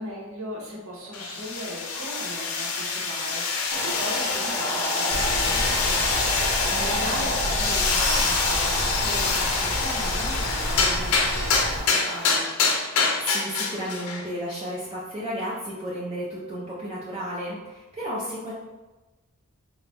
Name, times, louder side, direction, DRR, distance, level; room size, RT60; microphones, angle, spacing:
voice 1, 0.0-12.5, equal, 65° right, -3 dB, 1.0 m, -38 dB
sound 1, 1.1-14.3, left 4 dB, 80° left, 0.6 m, -26 dB
sound 2, 3.7-12.4, equal, 10° left, 0.7 m, -32 dB
Sawing, 5.1-11.8, equal, 85° right, 1.3 m, -31 dB
voice 2, 6.7-7.3 13.2-18.5, equal, 25° right, -7 dB, 0.5 m, -33 dB
4.0 x 2.3 x 3.4 m, 1.2 s
head